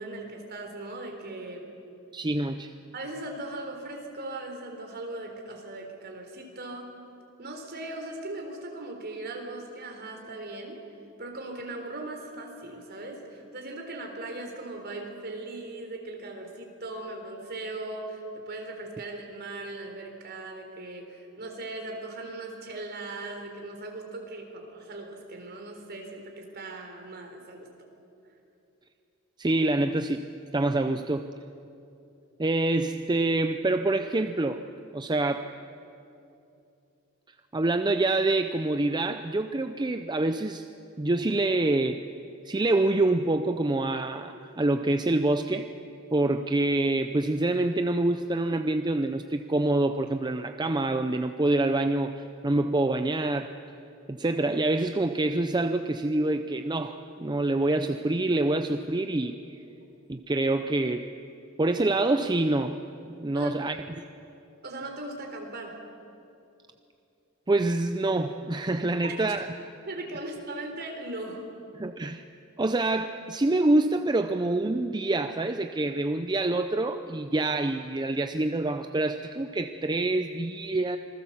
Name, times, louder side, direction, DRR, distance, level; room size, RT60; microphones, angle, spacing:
voice 1, 0.0-1.7 2.9-6.9 7.4-10.8 11.2-27.7 63.3-63.5 64.6-65.8 69.0-69.2 69.9-71.4, right 2 dB, 50° right, 3 dB, 3.8 m, -39 dB
voice 2, 2.1-2.7 29.4-31.3 32.4-34.6 34.9-35.5 37.5-40.6 41.0-42.0 42.4-45.7 46.1-53.5 54.1-59.4 60.1-61.1 61.6-62.8 63.1-64.1 67.5-69.5 71.8-72.2 72.6-81.0, right 2 dB, 20° right, 8 dB, 0.6 m, -26 dB
26.5 x 20.0 x 7.4 m, 2.7 s
head